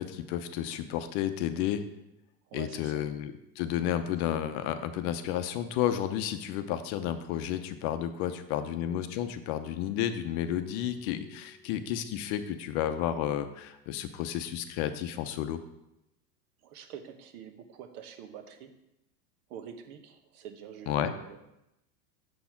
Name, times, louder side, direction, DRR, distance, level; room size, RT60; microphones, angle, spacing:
voice 1, 0.0-1.8 2.5-15.6 20.9-21.1, left 10 dB, 45° left, 10 dB, 0.7 m, -32 dB
voice 2, 2.5-3.1 16.6-18.7 19.5-21.4, right 8 dB, 65° right, 7 dB, 1.2 m, -46 dB
sound 1, 8.3-13.2, left 2 dB, 10° left, 1.1 m, -53 dB
6.7 x 4.3 x 5.8 m, 0.88 s
hypercardioid pair, 115°, 49 cm